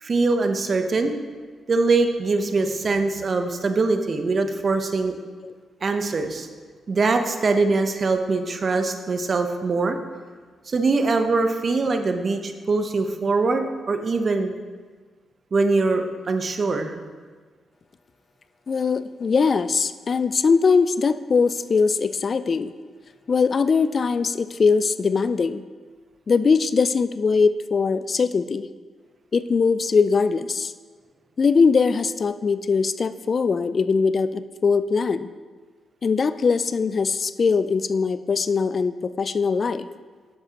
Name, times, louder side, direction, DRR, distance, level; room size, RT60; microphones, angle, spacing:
voice 1, 0.0-1.2 1.7-5.1 5.8-6.5 6.9-10.0 10.7-14.5 15.5-17.0, right 3 dB, 50° right, 7 dB, 0.8 m, -22 dB
voice 2, 18.7-22.7 23.3-25.6 26.3-28.7 29.3-30.7 31.4-35.3 36.0-39.9, left 5 dB, 50° left, 13 dB, 0.3 m, -21 dB
10.0 x 7.3 x 2.9 m, 1.5 s
supercardioid pair, 55°, 0 cm